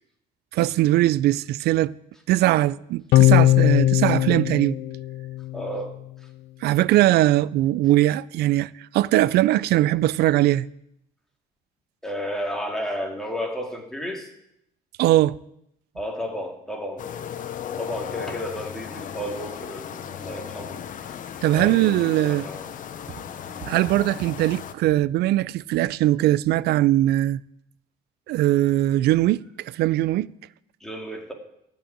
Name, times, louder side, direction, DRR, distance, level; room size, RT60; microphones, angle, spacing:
voice 1, 0.5-1.9 2.3-4.8 6.6-10.7 15.0-15.4 21.4-22.5 23.7-27.4 28.3-30.3, right 15 dB, 75° right, 0.4 m, -20 dB
sound 1, 3.1-5.7, left 15 dB, 75° left, 0.5 m, -19 dB
voice 2, 5.5-5.9 12.0-14.3 15.9-17.0 17.8-20.8 21.0-21.1 21.5-22.7 23.4-23.7 30.8-31.3, equal, 5° left, 2.4 m, -32 dB
sound 2, 17.0-24.7, left 9 dB, 50° left, 0.8 m, -36 dB
14.0 x 5.5 x 8.7 m
cardioid pair, 110°, 17 cm